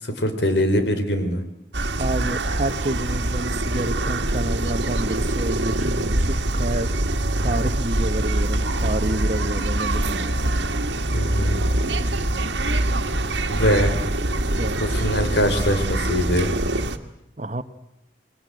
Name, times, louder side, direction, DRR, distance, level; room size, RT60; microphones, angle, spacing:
voice 1, 0.0-1.4 11.1-11.6 13.5-14.0 14.8-16.5, equal, 75° left, 8 dB, 3.7 m, -22 dB
sound 1, 1.7-17.0, right 1 dB, 85° right, 1.8 m, -24 dB
voice 2, 2.0-6.9 7.4-10.4 14.5-14.8 17.4-17.6, right 1 dB, 40° right, 11 dB, 1.2 m, -29 dB
29.0 x 21.5 x 7.8 m, 0.83 s
head